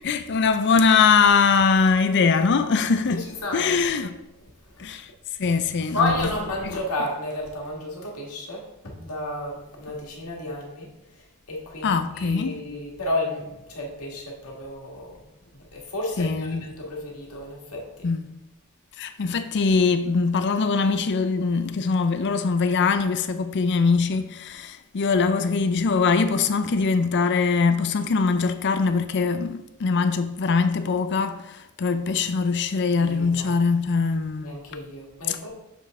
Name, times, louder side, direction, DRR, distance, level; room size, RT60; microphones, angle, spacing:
voice 1, 0.0-3.3 3.5-4.1 4.8-5.1 5.4-6.3 6.6-6.7 11.8-12.6 16.2-16.6 18.0-18.3 19.0-34.5 35.3-35.4, left 5 dB, 50° left, 0.5 m, -22 dB
voice 2, 3.1-3.8 4.7-5.0 5.9-10.9 11.1-18.1 33.0-33.6 34.4-35.5, left 1 dB, 80° left, 1.8 m, -32 dB
6.8 x 5.4 x 3.7 m
head